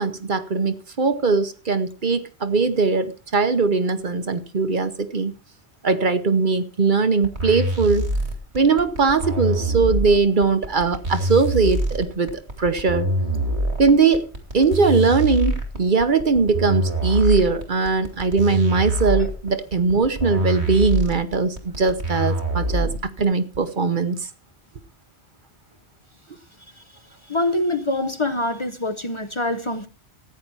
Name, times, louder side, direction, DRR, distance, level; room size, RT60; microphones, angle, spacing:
voice 1, 0.0-5.3 5.8-8.1 8.5-13.1 13.8-22.9 23.2-24.2, right 4 dB, 50° right, 1.1 m, -20 dB
sound 1, 7.2-23.2, right 1 dB, 85° right, 2.9 m, -25 dB
voice 2, 27.3-29.9, left 2 dB, 30° left, 0.8 m, -25 dB
14.5 x 9.4 x 4.6 m
omnidirectional pair, 1.1 m